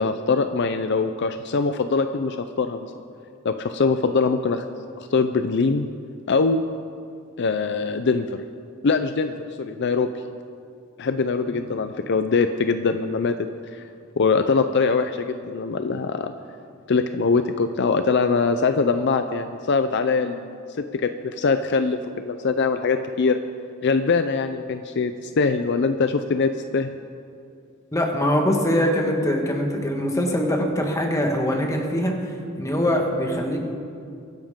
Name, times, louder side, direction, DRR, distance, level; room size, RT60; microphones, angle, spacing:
voice 1, 0.0-2.8 3.4-4.6 5.0-5.9 6.3-6.6 7.4-8.4 8.8-9.3 9.6-10.1 11.0-13.4 14.2-16.3 16.9-23.4 23.8-26.9, left 4 dB, 60° left, 9 dB, 0.5 m, -22 dB
voice 2, 27.9-33.6, equal, 15° left, 2 dB, 1.5 m, -23 dB
22.5 x 10.5 x 3.7 m, 2.4 s
head